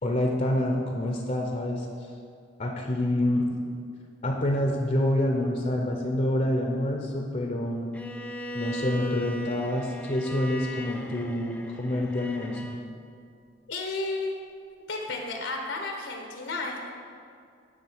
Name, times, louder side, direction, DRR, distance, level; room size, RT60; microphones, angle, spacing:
voice 1, 0.0-1.9 2.6-3.5 4.2-7.9 8.5-12.7, left 1 dB, 40° left, 2 dB, 0.7 m, -27 dB
Bowed string instrument, 7.9-12.8, left 1 dB, 5° left, 0.4 m, -38 dB
voice 2, 13.7-14.3 14.9-16.9, left 3 dB, 85° left, 1 dB, 1.2 m, -32 dB
10.0 x 3.8 x 7.3 m, 2.3 s
head